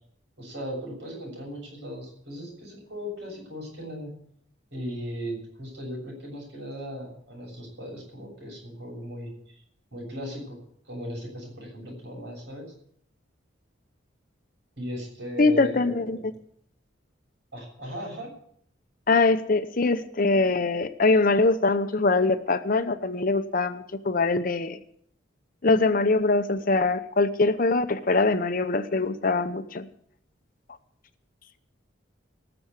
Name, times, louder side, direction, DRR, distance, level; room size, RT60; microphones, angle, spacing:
voice 1, 0.4-4.1 4.7-9.6 9.9-10.6 10.9-12.7 14.8-16.2 17.5-18.3, equal, 65° right, 0 dB, 7.2 m, -37 dB
voice 2, 15.4-16.2 19.1-24.8 25.6-29.9, left 3 dB, 45° left, 11 dB, 0.8 m, -23 dB
18.5 x 7.1 x 8.2 m, 0.66 s
head